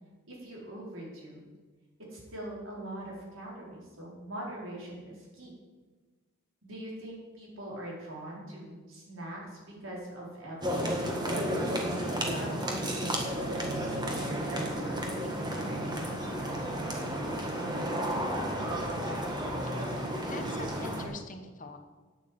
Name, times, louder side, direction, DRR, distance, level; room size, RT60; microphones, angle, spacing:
voice 1, 0.3-1.4 2.1-5.5 6.6-11.4 11.9-16.1, right 1 dB, 70° right, -4 dB, 4.5 m, -42 dB
sound 1, 10.6-21.0, equal, 20° right, 1.7 m, -32 dB
voice 2, 19.6-21.8, left 3 dB, 40° left, 6 dB, 1.2 m, -44 dB
9.1 x 8.4 x 8.0 m, 1.3 s
head